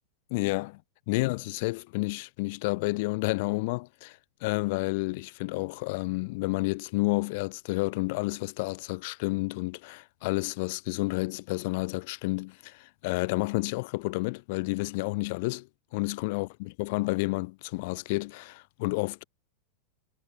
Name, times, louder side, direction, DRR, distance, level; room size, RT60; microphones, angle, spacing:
voice 1, 0.3-0.8 1.1-19.2, left 25 dB, 50° left, 1.5 m, -30 dB
figure-of-eight pair, 90°, 0 cm